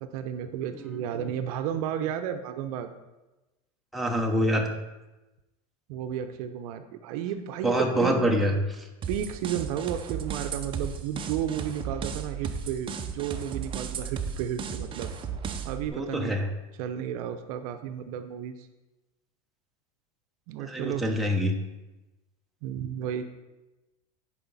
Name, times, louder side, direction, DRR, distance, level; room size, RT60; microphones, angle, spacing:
voice 1, 0.0-2.9 5.9-8.2 9.1-15.1 15.6-16.4 16.8-18.7 20.5-21.1 22.6-23.2, right 9 dB, 65° right, 8 dB, 0.7 m, -33 dB
voice 2, 3.9-4.7 7.6-8.9 15.9-16.5 20.6-21.5, equal, ahead, 0 dB, 1.0 m, -26 dB
sound 1, 9.0-15.9, right 6 dB, 25° right, 0.7 m, -35 dB
10.0 x 4.9 x 4.1 m, 1.1 s
supercardioid pair, 120°, 20 cm